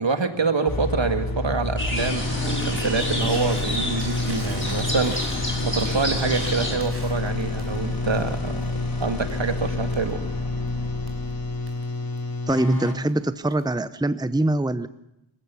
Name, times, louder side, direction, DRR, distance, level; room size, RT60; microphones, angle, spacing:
voice 1, 0.0-5.2 5.6-10.2, right 4 dB, 65° right, 7 dB, 2.2 m, -26 dB
sound 1, 0.7-13.0, left 2 dB, 45° left, 3.0 m, -28 dB
sound 2, 1.8-6.8, equal, 25° left, 5.9 m, -29 dB
Crackle, 1.8-13.8, right 1 dB, 30° right, 5.1 m, -44 dB
voice 2, 12.5-14.9, right 2 dB, 10° right, 13 dB, 0.9 m, -23 dB
26.5 x 15.5 x 7.1 m, 0.84 s
wide cardioid pair, 55°, 47 cm